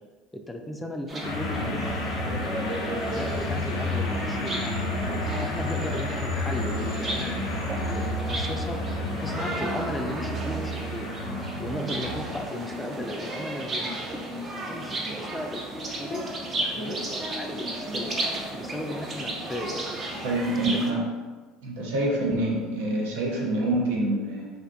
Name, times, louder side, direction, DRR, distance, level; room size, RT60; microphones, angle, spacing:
voice 1, 0.3-5.0 5.4-7.4 7.8-11.1 11.6-13.9 14.7-16.2 16.6-18.2 18.5-20.1 20.7-20.8, left 1 dB, 10° left, 3 dB, 0.3 m, -36 dB
sound 1, 1.1-20.9, right 1 dB, 35° right, 0.5 m, -34 dB
sound 2, 1.2-12.6, left 1 dB, 85° left, 0.5 m, -31 dB
voice 2, 20.2-21.0 21.6-24.5, right 1 dB, 80° right, -2 dB, 0.6 m, -26 dB
2.5 x 2.2 x 2.5 m, 1.3 s
hypercardioid pair, 80°, 0 cm